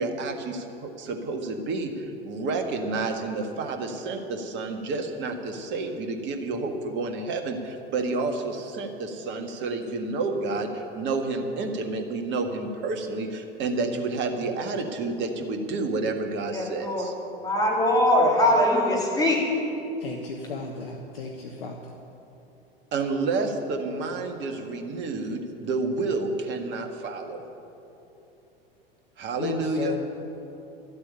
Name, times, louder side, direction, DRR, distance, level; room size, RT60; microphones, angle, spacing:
voice 1, 0.0-17.1 22.9-27.4 29.2-30.0, right 3 dB, 40° right, 5 dB, 1.8 m, -30 dB
voice 2, 16.5-17.1 17.4-19.5, left 1 dB, 10° left, -4 dB, 3.8 m, -22 dB
voice 3, 20.0-21.9 29.4-30.0, left 4 dB, 70° left, 2 dB, 1.2 m, -34 dB
12.5 x 8.8 x 10.0 m, 3.0 s
figure-of-eight pair, 85°, 30 cm